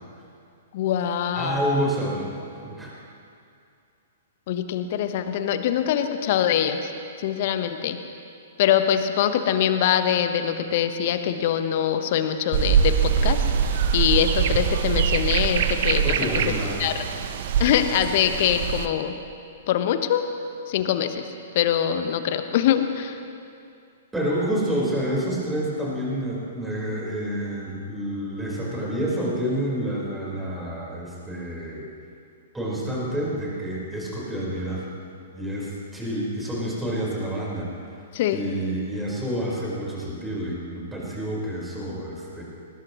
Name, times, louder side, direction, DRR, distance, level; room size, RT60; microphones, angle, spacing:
voice 1, 0.7-1.6 4.5-6.9 7.2-8.0 8.6-16.3 16.8-16.9 17.6-19.1 19.7-20.3 20.7-21.2 21.5-23.2 38.1-38.4, left 10 dB, 50° left, 8 dB, 1.2 m, -23 dB
voice 2, 1.3-2.3 2.6-2.9 16.0-16.8 24.1-31.8 32.5-34.9 35.3-37.7 38.3-42.4, equal, 5° right, -5 dB, 4.7 m, -28 dB
sound 1, 12.5-18.9, right 8 dB, 50° right, 0.9 m, -23 dB
20.5 x 20.0 x 3.1 m, 2.5 s
figure-of-eight pair, 110°, 0 cm